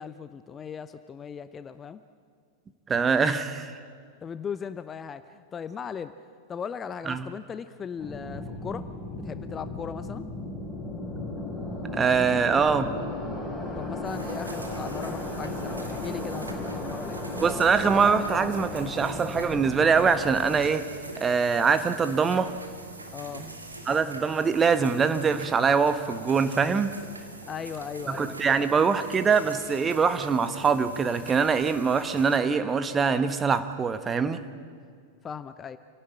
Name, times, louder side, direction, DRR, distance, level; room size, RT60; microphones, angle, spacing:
voice 1, 0.0-2.0 4.2-6.1 6.5-8.9 9.2-10.2 13.8-17.7 23.1-23.5 27.5-28.7 35.2-35.8, left 7 dB, 20° left, 12 dB, 0.7 m, -38 dB
voice 2, 2.9-3.8 7.0-7.3 11.9-12.9 17.4-20.9 21.2-22.5 23.8-26.9 28.1-34.4, right 5 dB, 20° right, 10 dB, 1.4 m, -23 dB
sound 1, 8.0-20.7, left 1 dB, ahead, 5.6 m, -35 dB
sound 2, 14.0-32.4, right 2 dB, 80° right, 2.7 m, -43 dB
28.0 x 17.0 x 8.7 m, 2.1 s
figure-of-eight pair, 90°, 0 cm